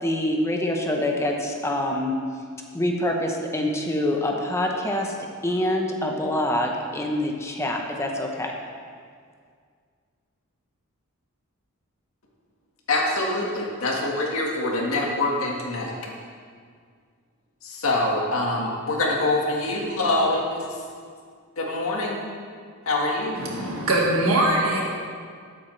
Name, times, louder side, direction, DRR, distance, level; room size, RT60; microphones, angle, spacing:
voice 1, 0.0-2.1 2.7-5.2 5.4-8.5, left 1 dB, 10° left, 2 dB, 0.8 m, -25 dB
voice 2, 12.9-15.9 17.6-20.7 21.6-22.3 22.9-23.4, left 2 dB, 70° left, -2 dB, 1.7 m, -25 dB
voice 3, 23.4-24.8, right 1 dB, 70° right, -2 dB, 1.8 m, -22 dB
12.5 x 8.5 x 3.3 m, 2.1 s
head